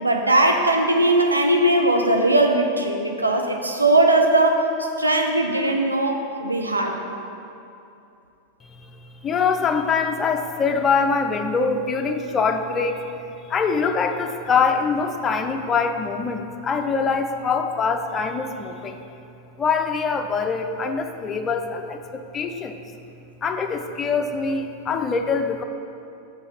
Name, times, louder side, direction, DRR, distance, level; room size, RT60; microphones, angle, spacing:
voice 1, 0.0-7.0, right 1 dB, 80° right, 3 dB, 0.6 m, -19 dB
voice 2, 8.6-13.0 13.5-19.0 19.6-22.8 23.4-25.6, left 5 dB, 25° left, 6 dB, 0.5 m, -24 dB
6.9 x 5.4 x 5.4 m, 2.7 s
figure-of-eight pair, 90°, 0 cm